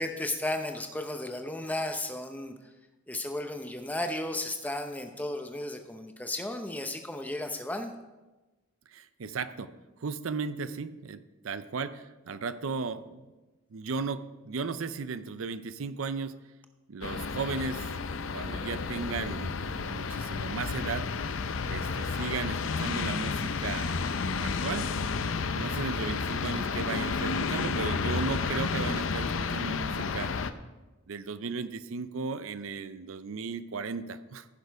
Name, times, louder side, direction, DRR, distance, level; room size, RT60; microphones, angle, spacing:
voice 1, 0.0-2.5 3.1-7.9, left 1 dB, 10° left, 6 dB, 0.7 m, -34 dB
voice 2, 8.9-13.2 13.7-16.3 16.9-17.9 18.3-21.3 21.7-24.0 24.4-24.9 25.5-30.3 31.1-34.5, right 4 dB, 80° right, 13 dB, 0.5 m, -36 dB
sound 1, 17.0-30.5, left 4 dB, 70° left, 0.6 m, -31 dB
15.0 x 6.7 x 4.7 m, 1.1 s
head